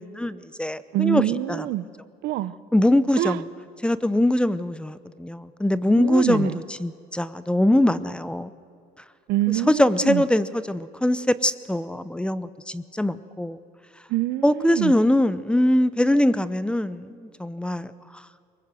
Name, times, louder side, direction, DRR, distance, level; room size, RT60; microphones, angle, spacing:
voice 1, 0.0-1.2 1.5-1.7 2.7-3.5 3.8-6.5 6.8-8.5 9.7-13.6 14.4-17.9, left 1 dB, 5° left, 15 dB, 0.7 m, -22 dB
voice 2, 0.9-1.9 2.2-2.6 3.2-3.4 6.0-6.6 9.3-10.2 14.1-14.9, right 15 dB, 85° right, 16 dB, 0.8 m, -25 dB
23.0 x 20.0 x 7.7 m, 2.4 s
cardioid pair, 110°, 17 cm